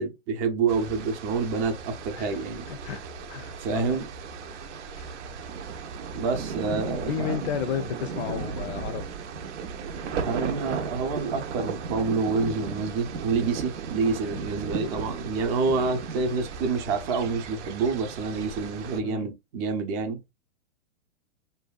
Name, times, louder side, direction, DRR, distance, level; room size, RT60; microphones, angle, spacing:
voice 1, 0.0-2.7 3.6-4.1 6.1-7.4 10.2-20.2, right 4 dB, 30° right, 0.5 m, -28 dB
sound 1, 0.7-19.0, right 6 dB, 80° right, 0.6 m, -36 dB
voice 2, 2.7-3.0 3.3-4.0 5.0-5.2 7.1-9.0 14.1-14.3 19.0-19.3, left 8 dB, 65° left, 0.5 m, -33 dB
2.6 x 2.2 x 2.3 m
hypercardioid pair, 135°, 35 cm